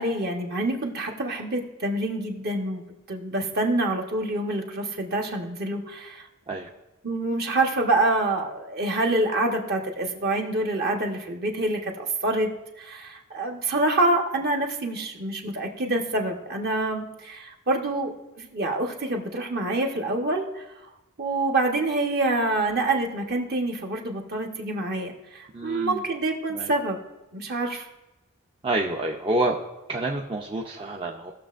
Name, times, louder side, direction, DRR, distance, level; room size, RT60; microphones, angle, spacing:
voice 1, 0.0-2.8 3.1-6.3 7.0-12.5 12.8-18.1 18.4-20.6 21.2-27.0 27.3-27.9, right 2 dB, 45° right, 2 dB, 1.2 m, -26 dB
voice 2, 25.5-26.0 26.5-26.7 28.6-29.6 29.9-31.3, right 2 dB, 25° right, 0 dB, 0.6 m, -28 dB
17.5 x 6.5 x 2.5 m, 1.0 s
head